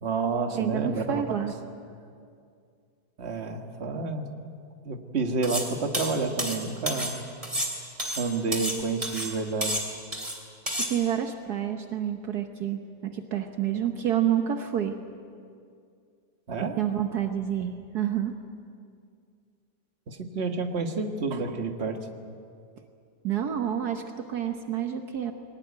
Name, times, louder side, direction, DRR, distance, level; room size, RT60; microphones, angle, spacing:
voice 1, 0.0-1.2 3.2-4.3 4.8-7.2 8.2-9.8 16.5-16.8 20.1-22.0, right 4 dB, 40° right, 5 dB, 1.7 m, -29 dB
voice 2, 0.5-1.5 10.8-15.0 16.8-18.3 23.2-25.3, right 10 dB, 70° right, 6 dB, 1.5 m, -28 dB
sound 1, 5.4-5.7 5.9-7.1 7.4-8.8 9.0-9.3 9.6-10.4 10.7-10.9, equal, 20° right, 3.0 m, -30 dB
22.0 x 19.0 x 9.4 m, 2.3 s
omnidirectional pair, 1.8 m